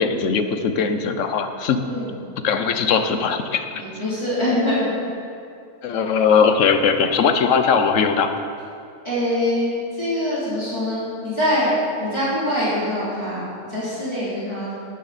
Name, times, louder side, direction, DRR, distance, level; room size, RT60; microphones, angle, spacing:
voice 1, 0.0-1.8 2.4-3.7 5.8-8.3, left 6 dB, 75° left, 8 dB, 1.1 m, -19 dB
voice 2, 3.7-4.9 9.0-11.7 12.0-14.7, left 1 dB, 20° left, -11 dB, 3.3 m, -24 dB
12.5 x 9.7 x 4.2 m, 2.4 s
omnidirectional pair, 1.3 m